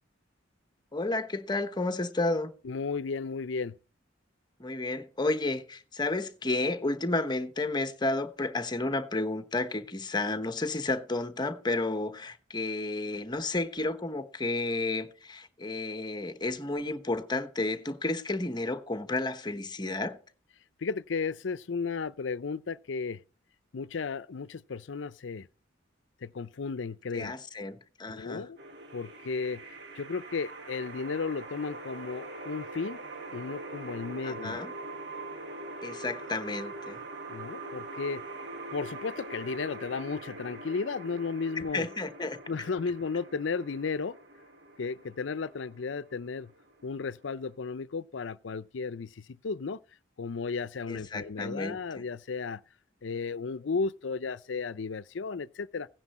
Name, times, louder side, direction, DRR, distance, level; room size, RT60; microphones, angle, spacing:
voice 1, 0.9-2.5 4.6-20.2 27.1-28.5 34.2-34.7 35.8-37.0 41.6-42.4 50.9-52.0, left 2 dB, 25° left, 1.0 m, -32 dB
voice 2, 2.6-3.8 20.8-23.2 23.7-25.5 26.2-27.3 28.1-28.6 28.9-29.6 30.0-33.0 33.3-34.6 37.3-38.2 38.7-41.9 42.5-44.2 44.8-46.5 46.8-49.8 50.2-52.6 53.0-55.9, left 4 dB, 75° left, 0.5 m, -34 dB
sound 1, 28.6-47.5, right 2 dB, 60° right, 1.6 m, -43 dB
16.0 x 9.8 x 4.2 m
head